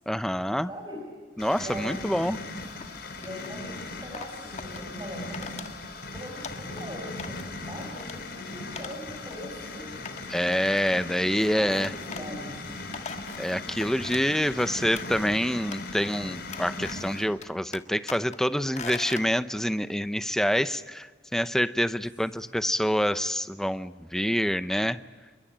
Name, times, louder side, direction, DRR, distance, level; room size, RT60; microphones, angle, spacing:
voice 1, 0.1-0.7 1.4-2.4 10.3-11.9 13.4-21.1 21.3-25.0, equal, 5° left, 13 dB, 0.7 m, -26 dB
voice 2, 0.7-1.1 1.5-2.4 3.2-7.4 7.7-10.1 11.2-12.7 22.2-22.5, equal, 25° right, 0 dB, 5.3 m, -42 dB
sound 1, 1.4-17.2, left 3 dB, 55° left, 5.0 m, -39 dB
sound 2, 2.8-3.6 4.1-4.8 5.3-5.7 6.0-6.8 7.2-7.5 7.9-8.2 8.8-9.0 9.3-9.4 10.0-11.1 11.8-12.3 12.7-14.3 14.6-15.3 15.7-16.2 16.5-17.1 17.4-18.4 18.7-19.3, left 5 dB, 40° left, 1.6 m, -41 dB
28.5 x 23.0 x 8.8 m, 1.5 s
head